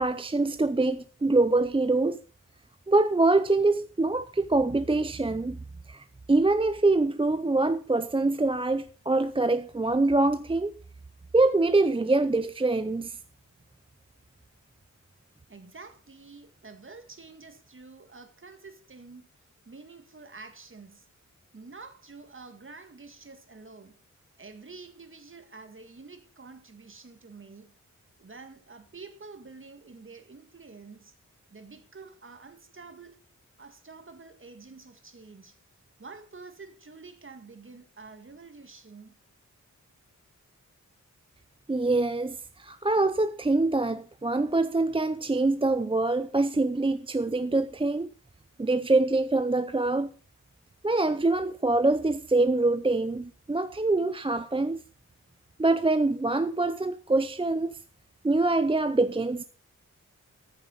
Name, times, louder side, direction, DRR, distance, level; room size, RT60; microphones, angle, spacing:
voice 1, 0.0-2.2 2.9-5.6 5.9-10.7 11.3-13.2 41.7-48.1 48.6-50.1 50.8-54.8 55.6-57.8 58.2-59.4, right 2 dB, 15° right, 0.5 m, -24 dB
voice 2, 15.5-19.3 19.7-21.1 21.5-24.0 24.4-27.7 28.2-31.1 31.5-33.2 33.6-35.6 36.0-39.1, right 4 dB, 40° right, 1.9 m, -48 dB
14.0 x 6.7 x 5.5 m
wide cardioid pair, 90°, 31 cm